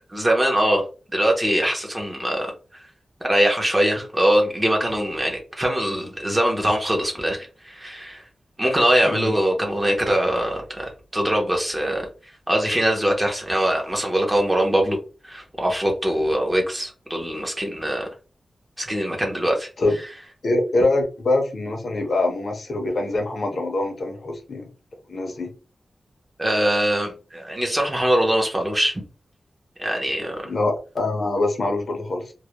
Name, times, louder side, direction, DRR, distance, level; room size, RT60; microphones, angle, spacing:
voice 1, 0.1-0.8 1.1-2.5 3.2-8.2 8.6-12.1 12.5-15.0 15.2-18.1 18.8-19.7 26.4-29.0 29.8-30.5, right 1 dB, 15° right, 1 dB, 0.6 m, -22 dB
voice 2, 9.0-9.4 19.8-20.0 20.4-24.7 25.1-25.5 30.4-32.3, left 2 dB, 55° left, 4 dB, 0.5 m, -24 dB
2.2 x 2.0 x 2.8 m, 0.34 s
wide cardioid pair, 140°, 0 cm